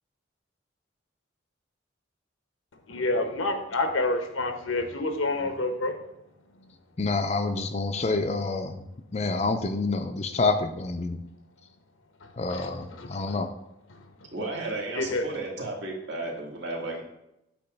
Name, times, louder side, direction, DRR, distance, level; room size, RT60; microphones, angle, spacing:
voice 1, 2.9-6.1 12.2-13.3 13.9-14.3 15.0-15.3, left 2 dB, 85° left, 6 dB, 0.9 m, -29 dB
voice 2, 7.0-8.9 9.1-11.2 12.4-13.5, left 3 dB, 35° left, 7 dB, 0.5 m, -27 dB
voice 3, 14.3-17.0, right 2 dB, 65° right, -1 dB, 1.8 m, -33 dB
8.5 x 3.0 x 5.9 m, 0.85 s
head